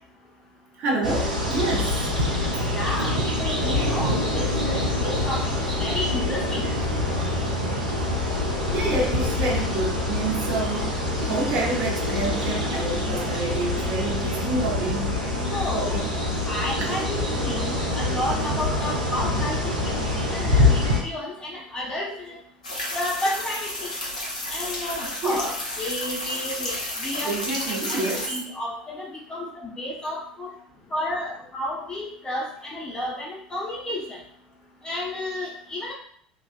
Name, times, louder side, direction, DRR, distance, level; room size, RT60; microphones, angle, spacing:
voice 1, 0.8-2.0 7.2-7.3 8.7-15.2 15.7-15.9 16.8-17.0 20.6-20.7 25.2-25.4 27.2-28.3, right 2 dB, 45° right, -1 dB, 0.7 m, -28 dB
sound 1, 1.0-21.0, left 2 dB, 90° right, 0.5 m, -25 dB
voice 2, 2.7-6.6 15.5-16.0 16.5-19.7 20.2-22.4 22.9-23.9 24.5-26.7 27.0-30.5 30.9-34.2 34.8-35.9, left 1 dB, 20° left, -4 dB, 0.8 m, -31 dB
sound 2, 22.6-28.3, left 1 dB, 80° left, 0.5 m, -32 dB
2.4 x 2.3 x 2.4 m, 0.63 s
figure-of-eight pair, 65°, 4 cm